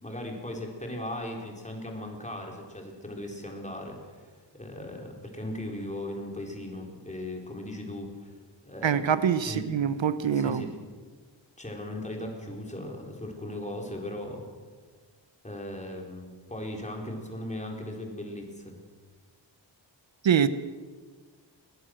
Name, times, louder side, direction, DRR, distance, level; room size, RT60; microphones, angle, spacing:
voice 1, 0.0-8.4 8.6-9.0 9.4-9.6 10.3-10.7 11.6-14.4 15.4-18.8, left 1 dB, 15° left, 1 dB, 4.2 m, -38 dB
voice 2, 8.8-10.7 20.2-20.5, right 8 dB, 80° right, 13 dB, 1.0 m, -24 dB
21.5 x 19.5 x 6.5 m, 1.4 s
wide cardioid pair, 140°, 45 cm